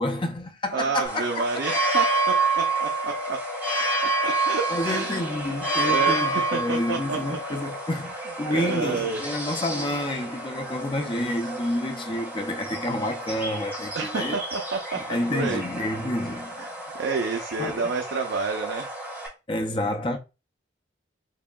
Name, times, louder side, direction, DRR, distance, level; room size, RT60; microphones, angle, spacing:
voice 1, 0.0-1.8 4.7-14.4 14.9-16.7 17.6-17.9 19.5-20.2, left 1 dB, 25° left, 0.5 m, -29 dB
voice 2, 0.7-3.4 4.2-5.2 5.9-6.3 6.5-7.2 8.5-9.2 13.9-15.6 16.6-16.7 16.9-18.9, right 4 dB, 80° right, 0.5 m, -29 dB
sound 1, 1.0-19.3, right 2 dB, 10° right, 1.5 m, -29 dB
4.7 x 2.8 x 2.3 m
head